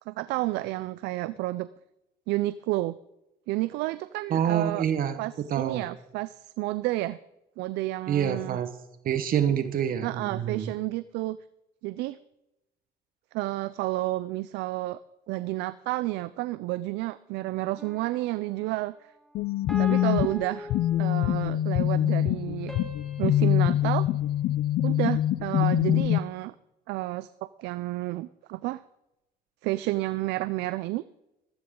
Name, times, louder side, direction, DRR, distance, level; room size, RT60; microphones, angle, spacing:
voice 1, 0.1-1.7 2.3-3.0 3.5-4.8 5.2-7.2 7.6-8.6 10.0-11.4 11.8-12.2 13.3-15.0 15.3-18.9 19.8-20.7 21.0-22.7 23.2-24.0 24.8-26.5 26.9-28.8 29.6-31.0, right 18 dB, 90° right, 15 dB, 0.4 m, -30 dB
voice 2, 4.3-5.2 5.5-5.8 8.1-8.7 9.0-10.7, right 9 dB, 60° right, 9 dB, 1.2 m, -26 dB
sound 1, 17.8-18.5 19.7-21.5 22.7-25.1, left 1 dB, ahead, 3.3 m, -42 dB
sound 2, 19.3-26.2, left 12 dB, 65° left, 0.5 m, -24 dB
15.0 x 14.0 x 3.8 m, 0.91 s
cardioid pair, 110°, 17 cm